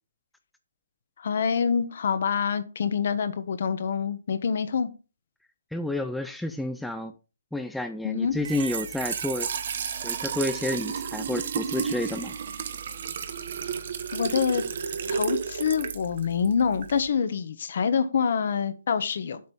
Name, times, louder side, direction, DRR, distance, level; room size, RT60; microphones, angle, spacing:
voice 1, 1.2-4.9 8.0-8.3 14.1-14.6 15.1-19.4, left 6 dB, 50° left, 12 dB, 1.2 m, -26 dB
voice 2, 5.7-7.1 7.5-9.5 10.0-12.3, left 1 dB, ahead, 6 dB, 0.4 m, -30 dB
Trickle dribble / Fill (with liquid), 8.3-17.1, right 7 dB, 45° right, 1.2 m, -32 dB
7.9 x 5.3 x 5.5 m, 0.32 s
hypercardioid pair, 165°, 0 cm